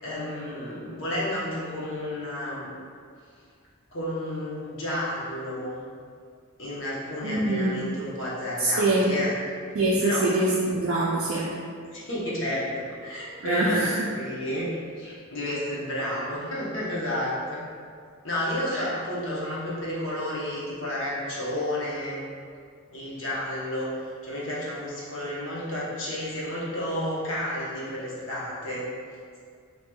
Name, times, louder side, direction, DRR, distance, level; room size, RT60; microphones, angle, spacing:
voice 1, 0.0-2.8 3.9-5.8 6.6-9.3 10.0-10.3 11.9-12.7 13.0-17.6 18.2-22.2 22.9-23.9 24.2-28.9, left 1 dB, 60° left, -7 dB, 0.9 m, -31 dB
voice 2, 7.2-7.7 8.6-9.1 9.7-11.5 13.4-14.0 18.7-18.8, right 2 dB, 60° right, -6 dB, 0.4 m, -24 dB
4.4 x 2.9 x 2.3 m, 2.1 s
head